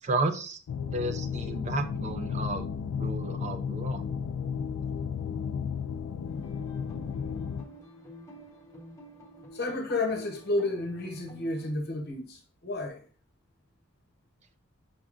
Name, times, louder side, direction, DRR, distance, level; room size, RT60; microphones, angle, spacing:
voice 1, 0.0-0.6 0.9-2.7 3.0-4.0, right 2 dB, 30° right, 0.3 m, -32 dB
sound 1, 0.7-7.6, left 7 dB, 80° left, 0.3 m, -33 dB
voice 2, 3.8-4.4 5.3-5.5 9.5-13.0, left 2 dB, 45° left, 0.8 m, -32 dB
sound 2, 6.3-11.7, equal, 15° left, 0.9 m, -50 dB
5.2 x 3.5 x 2.4 m
head